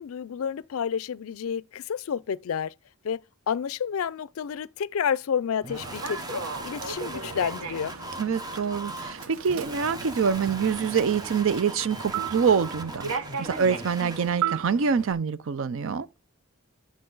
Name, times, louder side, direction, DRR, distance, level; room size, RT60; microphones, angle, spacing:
voice 1, 0.0-2.7 3.0-3.2 3.5-7.9, left 7 dB, 75° left, 0.4 m, -30 dB
sound 1, 5.6-14.3, right 2 dB, 20° right, 0.8 m, -39 dB
Human voice / Subway metro underground, 5.7-15.1, right 6 dB, 85° right, 1.1 m, -36 dB
voice 2, 8.2-13.1 13.4-16.1, right 6 dB, 65° right, 0.4 m, -25 dB
9.9 x 6.2 x 3.9 m
head